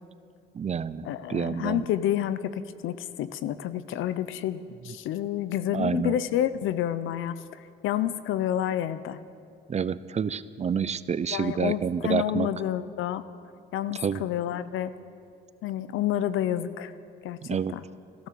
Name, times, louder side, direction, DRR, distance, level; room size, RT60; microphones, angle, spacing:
voice 1, 0.5-1.8 5.7-6.2 9.7-12.5 13.9-14.3 17.4-17.7, right 7 dB, 35° right, 16 dB, 0.5 m, -28 dB
voice 2, 1.0-9.2 11.3-13.2 13.7-14.9 15.6-16.9 17.2-17.4 17.7-17.8, left 11 dB, 85° left, 14 dB, 0.7 m, -29 dB
16.0 x 12.5 x 6.9 m, 2.5 s
cardioid pair, 90°, 20 cm